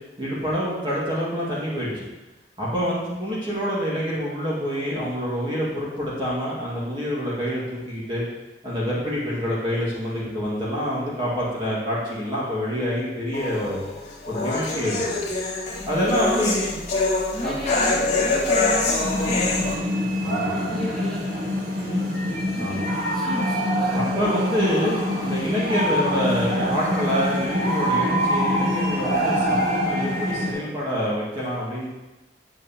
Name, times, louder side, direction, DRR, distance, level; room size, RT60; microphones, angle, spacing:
voice 1, 0.2-2.1 2.6-8.2 8.6-13.8 14.3-15.1 15.9-16.7 17.4-17.5 20.2-20.7 22.6-22.9 23.9-31.9, equal, 25° right, -7 dB, 2.0 m, -26 dB
voice 2, 2.7-3.3 15.8-16.7 17.3-20.0 20.5-22.3 22.5-24.1, left 1 dB, 5° left, -9 dB, 2.0 m, -34 dB
sound 1, 13.3-19.7, left 3 dB, 40° left, 1.9 m, -25 dB
sound 2, 19.0-30.5, equal, 55° right, 1.5 m, -25 dB
7.9 x 7.7 x 3.0 m, 1.0 s
head